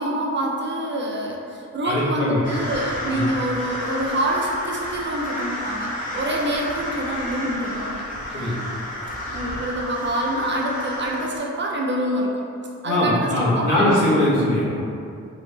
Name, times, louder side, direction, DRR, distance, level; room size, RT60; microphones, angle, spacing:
voice 1, 0.0-8.6 9.3-12.5 12.8-14.2, right 1 dB, 40° right, -2 dB, 0.4 m, -26 dB
voice 2, 1.8-2.4 3.1-3.2 8.3-8.5 12.8-14.9, left 1 dB, 70° left, -9 dB, 1.2 m, -21 dB
sound 1, 2.4-11.4, left 1 dB, 25° left, 0.8 m, -31 dB
3.1 x 2.4 x 3.2 m, 2.5 s
wide cardioid pair, 130°, 31 cm